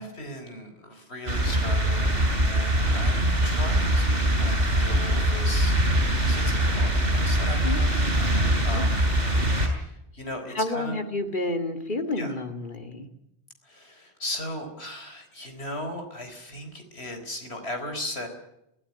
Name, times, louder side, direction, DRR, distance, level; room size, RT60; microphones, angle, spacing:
voice 1, 0.0-7.9 8.6-9.3 9.8-11.0 12.2-12.4 13.6-18.3, left 1 dB, 70° left, 5 dB, 4.4 m, -37 dB
sound 1, 1.3-9.7, right 1 dB, 55° right, 7.3 m, -23 dB
voice 2, 7.6-8.8 9.3-9.7 10.5-13.1, left 2 dB, 50° left, 6 dB, 2.6 m, -31 dB
24.5 x 15.5 x 9.9 m, 0.83 s
omnidirectional pair, 1.1 m